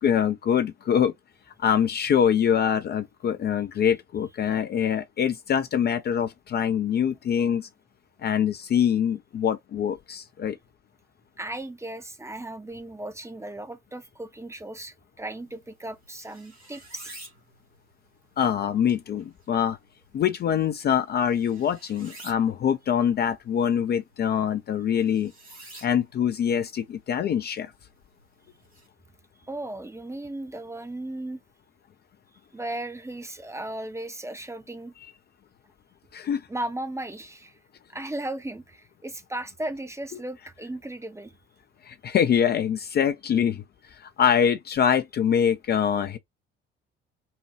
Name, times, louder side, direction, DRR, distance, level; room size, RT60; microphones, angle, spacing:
voice 1, 0.0-1.1 1.6-7.7 8.2-10.6 18.4-19.8 20.1-25.3 25.8-27.7 36.1-36.4 41.8-43.6 43.9-46.2, left 8 dB, 35° left, 0.5 m, -24 dB
voice 2, 11.4-17.1 29.4-31.4 32.5-34.9 36.5-37.6 37.9-41.3, right 1 dB, 10° right, 0.6 m, -36 dB
sound 1, 15.4-28.9, right 1 dB, 85° right, 2.1 m, -52 dB
5.5 x 2.2 x 3.1 m
figure-of-eight pair, 50°, 31 cm